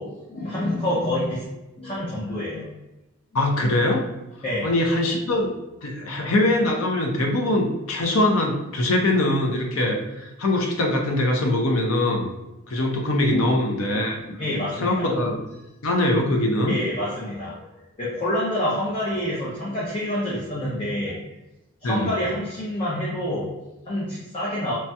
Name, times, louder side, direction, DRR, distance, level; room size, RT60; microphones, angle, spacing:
voice 1, 0.0-1.5 1.8-2.7 4.4-4.8 13.3-13.6 13.9-14.0 14.4-15.1 16.7-21.3 21.8-24.7, left 1 dB, 25° left, -8 dB, 0.6 m, -27 dB
voice 2, 3.3-4.1 4.6-5.5 5.8-12.3 12.7-14.2 14.8-15.4 15.8-16.8 21.8-22.1, left 1 dB, 70° left, 1 dB, 0.6 m, -22 dB
3.2 x 2.7 x 2.2 m, 1.0 s
head